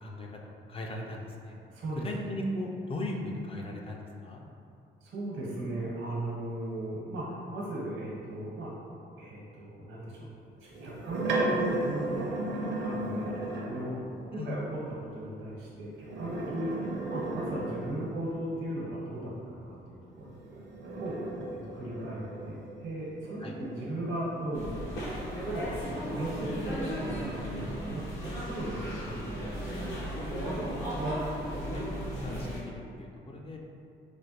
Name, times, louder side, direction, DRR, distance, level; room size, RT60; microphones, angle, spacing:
voice 1, 0.0-1.5 2.0-4.4 14.4-14.6 23.4-23.5 31.7-33.6, left 1 dB, 30° left, 0 dB, 0.3 m, -38 dB
voice 2, 1.7-2.1 5.0-8.7 9.2-10.3 10.6-12.4 12.8-13.3 13.6-14.0 14.2-14.8 15.1-20.3 21.0-21.2 21.6-25.2 25.5-29.9 30.9-31.5, right 1 dB, 85° right, -5 dB, 0.9 m, -37 dB
sound 1, 10.7-14.0 15.9-18.3 20.2-25.4 26.0-27.7, right 2 dB, 60° right, 0.5 m, -36 dB
sound 2, 24.5-32.6, equal, 75° left, 1.1 m, -35 dB
3.1 x 2.2 x 2.9 m, 2.6 s
cardioid pair, 90°, 20 cm